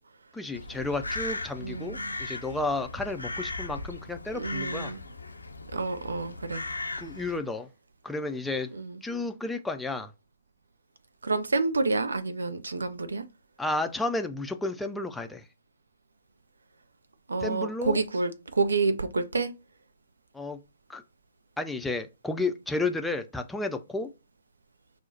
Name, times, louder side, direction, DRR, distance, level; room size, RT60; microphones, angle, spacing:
voice 1, 0.3-4.9 7.0-7.7 8.0-8.7 9.0-10.1 13.6-15.4 17.4-18.0 20.3-20.6 20.9-21.0 21.6-24.1, left 2 dB, 5° left, 0.4 m, -32 dB
Crow, 0.5-7.4, left 2 dB, 80° left, 0.5 m, -37 dB
voice 2, 1.6-2.1 4.3-5.0 5.7-6.6 8.7-9.0 11.2-13.2 17.3-19.5, right 3 dB, 70° right, 0.5 m, -29 dB
5.9 x 2.0 x 2.7 m
figure-of-eight pair, 120°, 0 cm